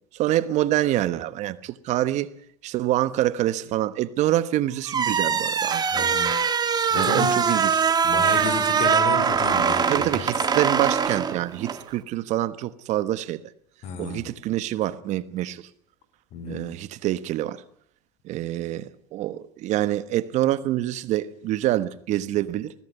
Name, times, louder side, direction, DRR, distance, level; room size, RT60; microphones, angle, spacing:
voice 1, 0.1-2.3 2.6-6.1 6.9-7.8 9.9-13.4 14.0-15.7 16.5-17.6 18.2-22.7, right 14 dB, 60° right, 1.3 m, -26 dB
sound 1, 4.9-11.8, right 6 dB, 30° right, 2.1 m, -22 dB
voice 2, 5.9-6.3 6.9-7.3 8.0-10.2 13.8-14.3 16.3-16.7, left 5 dB, 60° left, 4.1 m, -32 dB
20.5 x 17.0 x 9.4 m
supercardioid pair, 105°, 13 cm